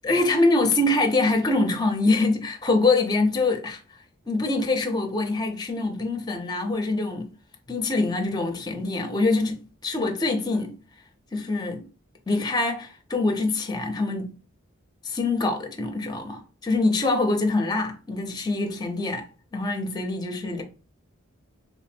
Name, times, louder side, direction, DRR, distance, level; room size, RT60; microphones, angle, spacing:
voice 1, 0.0-3.8 4.3-7.3 7.7-10.7 11.3-11.8 12.3-14.4 15.0-19.2 19.5-20.6, left 2 dB, 20° left, 0.5 m, -24 dB
3.3 x 2.0 x 4.2 m
head